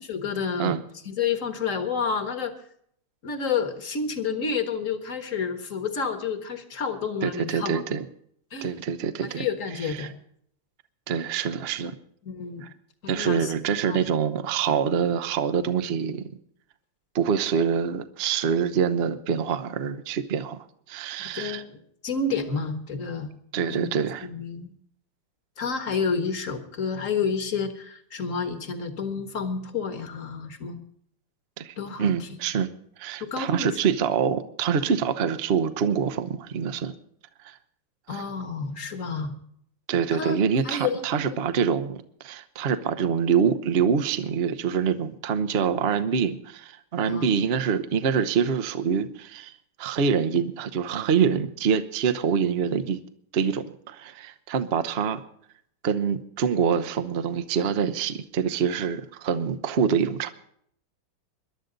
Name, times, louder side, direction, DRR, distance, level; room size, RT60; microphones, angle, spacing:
voice 1, 0.1-0.7 1.0-2.5 3.2-7.8 8.5-8.7 9.3-10.2 12.2-12.6 13.0-13.5 13.9-14.0 21.3-21.8 22.0-23.3 23.7-23.9 24.2-24.7 25.6-30.8 31.8-32.4 33.2-33.7 38.1-39.4 40.2-40.4 40.6-41.4 47.1-47.4, left 5 dB, 40° left, 8 dB, 1.6 m, -29 dB
voice 2, 7.2-8.0 8.6-9.5 10.0-10.1 11.1-11.9 12.6-12.7 13.1-16.3 17.1-20.6 20.9-21.6 23.5-24.3 31.6-32.7 33.0-36.9 37.4-37.6 38.1-38.2 39.9-49.5 49.8-53.0 53.3-55.2 55.8-60.3, right 7 dB, 60° right, 11 dB, 0.6 m, -25 dB
22.0 x 11.5 x 3.9 m, 0.67 s
omnidirectional pair, 2.4 m